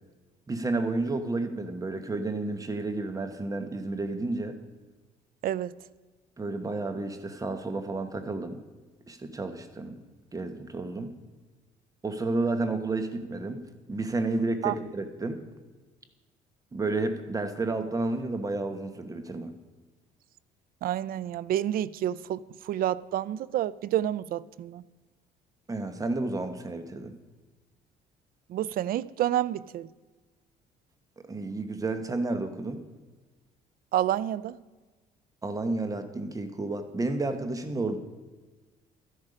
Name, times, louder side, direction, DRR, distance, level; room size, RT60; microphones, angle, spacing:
voice 1, 0.5-4.6 6.4-8.6 9.1-10.0 10.3-11.1 12.0-13.6 13.9-15.4 16.7-19.5 25.7-27.1 31.3-32.8 35.4-38.0, right 2 dB, 20° right, 1.2 m, -31 dB
voice 2, 5.4-5.7 14.6-14.7 20.8-24.8 28.5-29.9 33.9-34.6, right 12 dB, 60° right, 0.4 m, -29 dB
12.5 x 11.0 x 5.0 m
cardioid pair, 110°, 17 cm